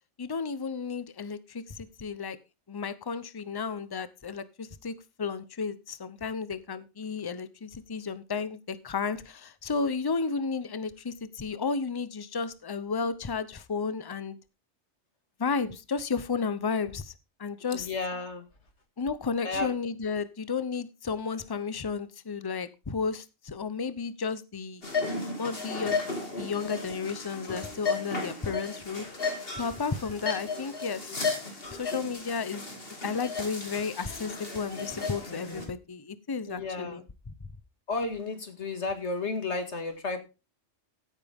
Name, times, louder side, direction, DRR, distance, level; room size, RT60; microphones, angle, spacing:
voice 1, 0.2-2.4 2.7-14.4 15.4-17.1 17.4-17.9 19.0-24.9 25.4-26.0 26.4-29.1 29.6-31.1 31.7-32.7 33.0-37.3, left 5 dB, 25° left, 15 dB, 0.7 m, -33 dB
voice 2, 17.7-18.4 19.4-19.7 36.5-37.0 37.9-40.2, left 3 dB, 70° left, 7 dB, 2.3 m, -32 dB
sound 1, 24.8-35.7, left 4 dB, 50° left, 2.8 m, -34 dB
15.0 x 8.8 x 3.6 m, 0.29 s
omnidirectional pair, 1.2 m